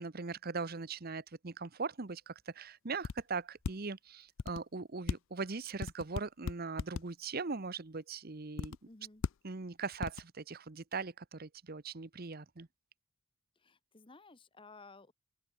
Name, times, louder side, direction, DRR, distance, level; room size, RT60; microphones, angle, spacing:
voice 1, 0.0-8.8 9.4-12.7, right 4 dB, 45° right, 0.9 m, -40 dB
sound 1, 3.0-3.2 3.6-3.7 4.4-4.6 5.1-5.2 5.8-7.0 8.6-8.8 9.2-9.3 10.0-10.2, left 5 dB, 60° left, 0.4 m, -36 dB
voice 2, 8.8-9.2 13.5-15.1, left 3 dB, 25° left, 1.0 m, -56 dB
open air
head